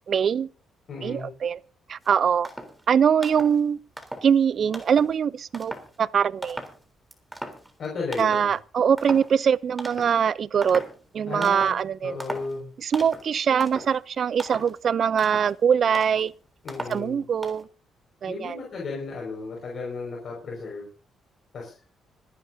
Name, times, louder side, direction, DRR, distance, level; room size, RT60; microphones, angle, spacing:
voice 1, 0.1-0.5 1.0-1.6 1.9-2.5 2.9-3.8 4.2-6.6 8.2-10.8 11.1-12.2 12.8-16.3 16.9-17.7 18.2-18.6, right 7 dB, 55° right, 0.6 m, -23 dB
voice 2, 0.9-1.3 7.8-8.5 11.3-11.8 12.0-12.7 16.6-17.2 18.3-20.8 21.5-21.7, left 4 dB, 55° left, 5.6 m, -34 dB
sound 1, 2.0-2.1 2.4-2.8 3.2-3.6 4.0-4.4 4.7-5.2 5.5-6.0 6.4-6.8 7.1-7.9 8.1-8.5 9.0-9.3 9.8-10.2 10.6-11.0 11.4-11.8 12.2-12.6 12.9-13.3 13.6-14.0 14.4-14.8 15.1-15.5 15.9-16.2 16.7-17.1 17.4-17.6, right 1 dB, 5° right, 3.7 m, -38 dB
26.0 x 11.0 x 2.8 m
cardioid pair, 90°, 0 cm